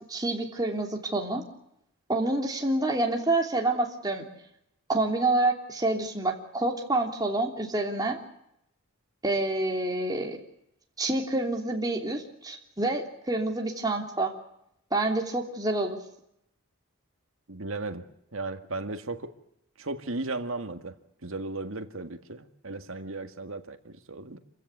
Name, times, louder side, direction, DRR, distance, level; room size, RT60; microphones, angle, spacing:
voice 1, 0.1-1.4 2.1-4.2 4.9-8.2 9.2-10.4 11.0-14.3 14.9-16.0, right 2 dB, 15° right, 2 dB, 3.2 m, -27 dB
voice 2, 17.5-18.0 18.3-19.3 19.8-21.0 21.2-24.4, right 2 dB, 65° right, 8 dB, 1.8 m, -35 dB
28.0 x 15.5 x 9.6 m, 0.79 s
head